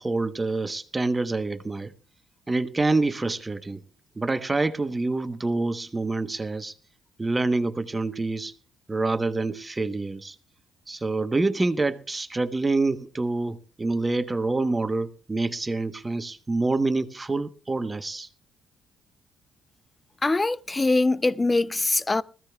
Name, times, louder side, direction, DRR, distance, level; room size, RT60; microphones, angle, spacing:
voice 1, 0.0-1.9 2.5-3.8 4.2-6.7 7.2-8.5 8.9-10.4 10.9-18.3, right 3 dB, 25° right, 1.1 m, -26 dB
voice 2, 20.2-22.2, left 2 dB, 25° left, 0.5 m, -23 dB
20.5 x 15.0 x 2.3 m
supercardioid pair, 70°, 0 cm